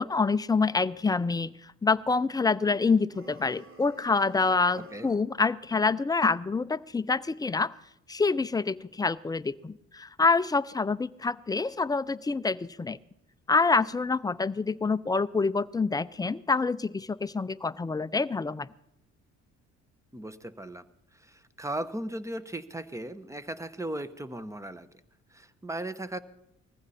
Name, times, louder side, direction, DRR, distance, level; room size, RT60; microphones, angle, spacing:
voice 1, 0.0-7.7 8.1-13.0 13.5-18.7, left 4 dB, 15° left, 14 dB, 0.4 m, -27 dB
sound 1, 3.1-5.3, right 3 dB, 45° right, 2.4 m, -51 dB
voice 2, 20.1-20.9 21.1-24.9 25.3-26.2, right 1 dB, 10° right, 14 dB, 0.9 m, -37 dB
19.5 x 15.0 x 4.2 m, 0.85 s
cardioid pair, 90°, 30 cm